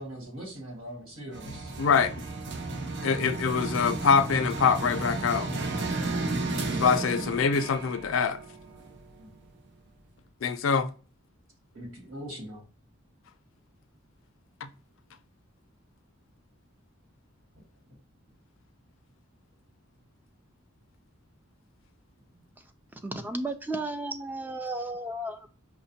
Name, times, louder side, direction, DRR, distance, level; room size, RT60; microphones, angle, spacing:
voice 1, 0.0-2.0 9.2-9.3 11.7-12.6 17.5-18.0, equal, 80° right, 1.5 m, -42 dB
sound 1, 1.3-9.3, right 3 dB, 60° right, 0.6 m, -33 dB
voice 2, 1.8-2.1 3.0-5.5 6.8-8.4 10.4-10.9 14.6-14.7, left 6 dB, 70° left, 0.4 m, -24 dB
voice 3, 22.9-25.5, right 2 dB, 10° right, 0.3 m, -34 dB
5.0 x 2.1 x 2.7 m
head